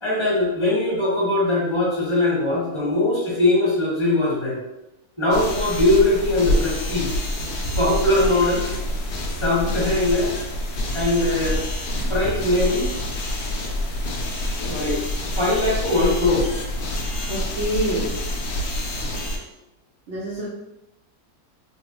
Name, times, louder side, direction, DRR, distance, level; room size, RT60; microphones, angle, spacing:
voice 1, 0.0-4.6 5.2-7.1 7.8-8.6 9.3-10.3 10.9-11.6 12.1-12.9 14.6-15.0 15.3-16.5, left 2 dB, 20° left, -8 dB, 1.2 m, -21 dB
sound 1, 5.3-19.4, left 1 dB, 85° left, 0.4 m, -27 dB
voice 2, 17.3-18.2 20.1-20.5, right 1 dB, 60° right, -6 dB, 0.8 m, -26 dB
3.6 x 2.1 x 2.9 m, 0.91 s
omnidirectional pair, 1.6 m